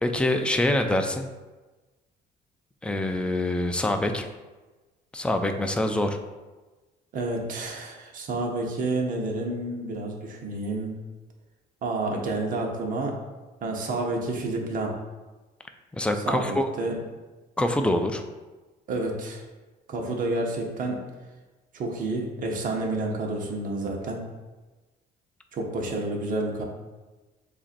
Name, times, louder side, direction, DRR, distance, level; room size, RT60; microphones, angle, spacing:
voice 1, 0.0-1.3 2.8-4.3 5.1-6.2 15.9-16.7 17.6-18.2, left 1 dB, 5° left, 6 dB, 0.4 m, -25 dB
voice 2, 7.1-10.9 11.8-13.2 13.6-14.9 16.2-17.0 18.9-19.4 19.9-21.0 21.7-24.2 25.5-26.6, right 2 dB, 55° right, 1 dB, 0.9 m, -29 dB
7.1 x 2.6 x 2.5 m, 1.2 s
cardioid pair, 110°, 17 cm